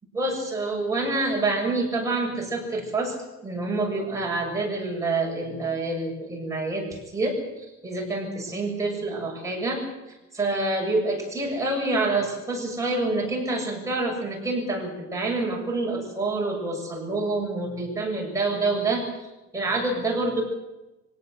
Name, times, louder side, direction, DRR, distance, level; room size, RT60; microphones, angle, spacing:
voice 1, 0.1-3.2 3.4-6.8 7.1-9.8 10.1-19.1 19.5-20.4, right 2 dB, 10° right, -2 dB, 7.1 m, -27 dB
24.5 x 17.5 x 8.0 m, 1.0 s
cardioid pair, 170°, 29 cm